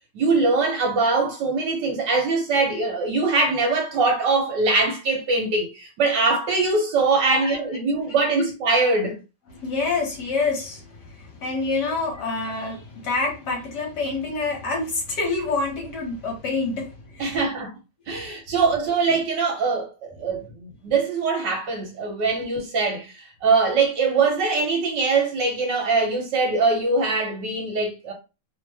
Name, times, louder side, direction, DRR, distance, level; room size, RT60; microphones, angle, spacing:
voice 1, 0.1-9.2 11.9-12.0 17.2-17.7 18.1-28.1, right 3 dB, 65° right, 1.4 m, -22 dB
voice 2, 9.5-17.4 18.1-18.3, left 3 dB, 60° left, 1.3 m, -27 dB
3.2 x 2.1 x 3.3 m
omnidirectional pair, 2.2 m